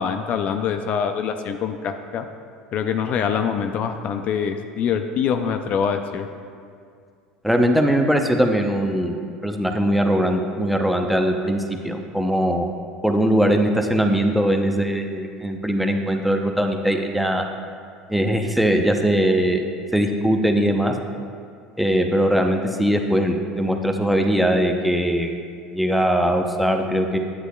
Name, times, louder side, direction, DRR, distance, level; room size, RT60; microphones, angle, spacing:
voice 1, 0.0-2.3 2.7-6.3, left 7 dB, 50° left, 7 dB, 0.4 m, -24 dB
voice 2, 7.4-9.2 9.4-12.7 13.0-17.4 18.1-19.7 19.9-20.9 21.8-25.4 25.7-27.2, equal, ahead, 3 dB, 0.7 m, -20 dB
9.5 x 8.0 x 2.3 m, 2.2 s
hypercardioid pair, 85°, 3 cm